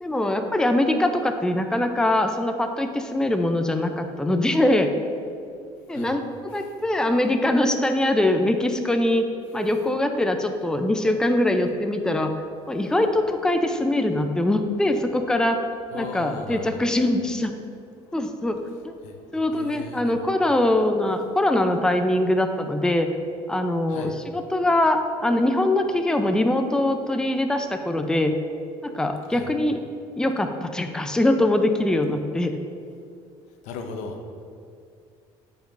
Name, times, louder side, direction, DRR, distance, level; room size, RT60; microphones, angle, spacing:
voice 1, 0.0-4.9 5.9-6.2 6.5-9.2 9.5-12.4 12.7-15.6 15.9-17.5 18.1-18.6 18.8-19.0 19.3-23.1 23.5-28.3 28.8-29.8 30.2-32.6, left 1 dB, 5° left, 6 dB, 0.6 m, -22 dB
voice 2, 15.9-16.9 19.0-19.1 19.5-20.1 23.9-24.2 29.3-29.5 33.6-34.2, left 4 dB, 80° left, 5 dB, 0.9 m, -36 dB
14.0 x 5.2 x 2.6 m, 2.4 s
supercardioid pair, 90°, 12 cm